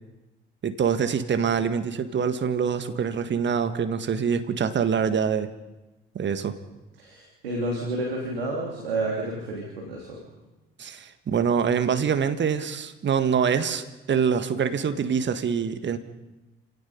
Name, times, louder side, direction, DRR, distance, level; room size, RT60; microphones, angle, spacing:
voice 1, 0.6-5.5 6.2-6.6 10.8-16.0, right 7 dB, 40° right, 10 dB, 1.8 m, -25 dB
voice 2, 7.0-10.2, right 2 dB, 80° right, -1 dB, 3.1 m, -30 dB
28.5 x 17.0 x 5.4 m, 1.1 s
figure-of-eight pair, 50°, 29 cm